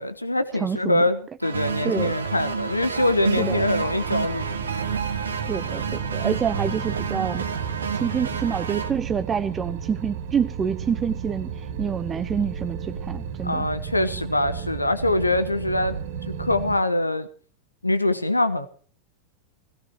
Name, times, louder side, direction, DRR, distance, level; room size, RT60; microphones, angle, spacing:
voice 1, 0.0-4.6 13.4-16.0 16.3-17.3 17.8-18.7, left 1 dB, 85° left, 11 dB, 1.2 m, -24 dB
voice 2, 0.5-1.0 1.8-2.1 3.4-3.7 5.5-7.4 8.0-13.7, right 7 dB, 20° right, 12 dB, 0.7 m, -27 dB
sound 1, 1.4-8.9, right 6 dB, 70° right, 1.7 m, -29 dB
sound 2, 2.1-16.8, right 7 dB, 55° right, 2.4 m, -34 dB
17.0 x 17.0 x 4.5 m, 0.42 s
figure-of-eight pair, 90°, 0 cm